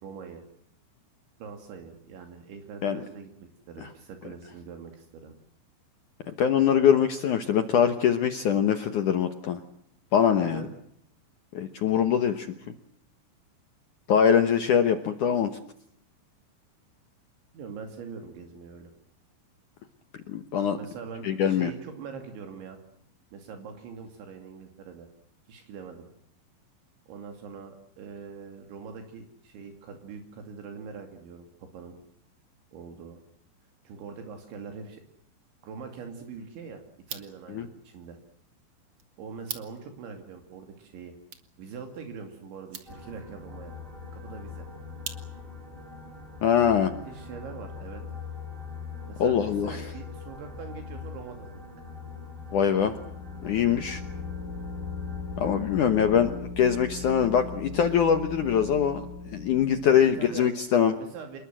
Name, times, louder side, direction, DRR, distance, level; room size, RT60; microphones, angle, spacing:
voice 1, 0.0-0.4 1.4-3.3 3.7-5.3 10.4-10.7 17.5-18.9 20.7-22.8 23.3-25.1 25.5-26.1 27.1-32.0 32.7-33.2 33.8-35.0 35.6-36.8 37.1-38.2 39.2-41.2 41.6-43.7 44.1-44.7 46.6-48.0 49.1-51.5 52.8-52.9 56.1-56.3 60.2-60.5 61.0-61.4, right 5 dB, 75° right, 5 dB, 4.8 m, -43 dB
voice 2, 6.3-9.6 10.1-10.7 11.5-12.5 14.1-15.5 20.3-20.8 21.2-21.7 37.5-37.7 46.4-46.9 49.2-49.9 52.5-52.9 53.4-54.0 55.4-61.0, left 8 dB, 80° left, 8 dB, 1.7 m, -23 dB
sound 1, 36.9-45.7, right 7 dB, 50° right, 1.7 m, -47 dB
sound 2, 42.9-56.4, left 5 dB, 10° right, 4.5 m, -41 dB
sound 3, 52.6-60.3, left 3 dB, 45° left, 5.4 m, -39 dB
27.5 x 21.5 x 7.5 m, 0.71 s
omnidirectional pair, 5.4 m